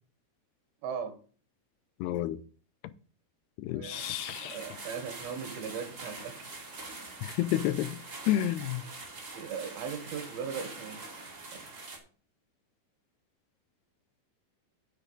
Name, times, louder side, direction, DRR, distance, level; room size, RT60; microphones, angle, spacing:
voice 1, 0.8-1.2 3.7-4.1 4.4-6.7 9.3-11.0 11.5-11.6, right 6 dB, 75° right, 3.1 m, -38 dB
voice 2, 2.0-2.4 3.6-4.6 7.2-8.0 8.3-8.8, left 12 dB, 85° left, 2.7 m, -30 dB
sound 1, 3.9-12.0, right 3 dB, 30° right, 2.5 m, -44 dB
9.6 x 9.0 x 3.9 m
omnidirectional pair, 4.6 m